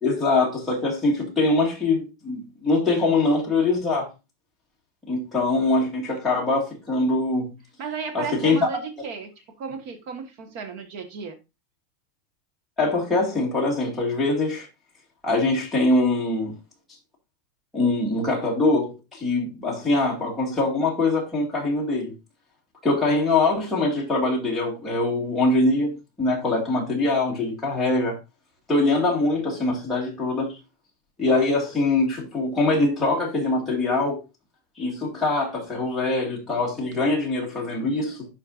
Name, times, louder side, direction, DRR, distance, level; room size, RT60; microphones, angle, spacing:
voice 1, 0.0-4.1 5.1-7.5 8.1-8.7 12.8-14.7 15.2-16.6 17.7-22.1 22.8-28.2 28.7-30.6 31.2-34.2 34.8-38.3, left 2 dB, 5° left, 2.0 m, -23 dB
voice 2, 7.8-9.3 9.6-11.4, right 5 dB, 45° right, 1.3 m, -34 dB
11.5 x 4.4 x 2.5 m
supercardioid pair, 175°, 0 cm